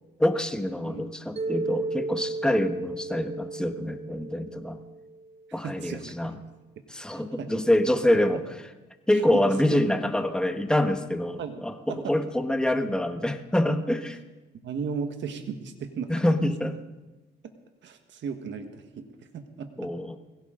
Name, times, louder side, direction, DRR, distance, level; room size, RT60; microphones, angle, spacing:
voice 1, 0.2-4.8 5.5-6.4 6.9-8.4 9.1-14.2 16.1-16.7 19.8-20.2, left 1 dB, 5° left, 6 dB, 1.3 m, -26 dB
Mallet percussion, 1.4-5.5, right 2 dB, 30° right, 0.7 m, -34 dB
voice 2, 5.6-6.3 7.1-7.5 9.1-9.4 9.7-10.0 11.4-12.1 14.6-16.1 17.8-19.0 19.3-19.7, right 6 dB, 65° right, 6 dB, 1.6 m, -35 dB
21.5 x 16.5 x 3.9 m, 1.2 s
cardioid pair, 90°, 20 cm